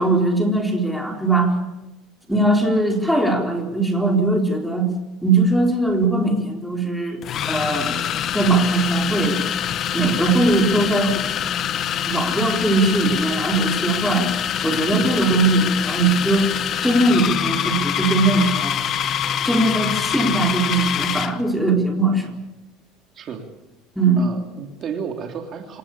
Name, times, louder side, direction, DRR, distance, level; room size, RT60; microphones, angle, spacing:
voice 1, 0.0-1.5 2.3-4.9 5.2-7.2 7.5-8.0 8.3-9.4 9.9-11.1 12.1-14.3 14.6-16.5 16.8-18.8 19.4-22.3 24.0-24.3, right 2 dB, ahead, 2 dB, 4.3 m, -20 dB
sound 1, 5.9-6.1 7.2-21.4, left 9 dB, 40° left, 1.4 m, -25 dB
voice 2, 23.1-23.5 24.2-25.8, right 7 dB, 40° right, 3 dB, 3.3 m, -32 dB
27.5 x 18.0 x 8.6 m, 0.97 s
cardioid pair, 135°, 0 cm